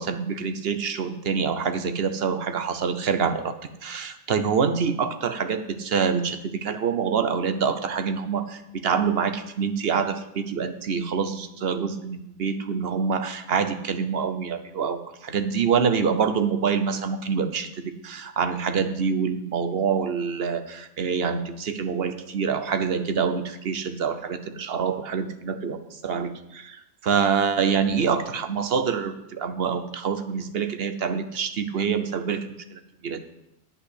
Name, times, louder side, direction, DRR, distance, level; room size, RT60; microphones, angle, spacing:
voice 1, 0.0-3.5 3.8-33.2, right 6 dB, 55° right, 10 dB, 0.9 m, -26 dB
9.8 x 5.5 x 8.4 m, 0.86 s
omnidirectional pair, 1.3 m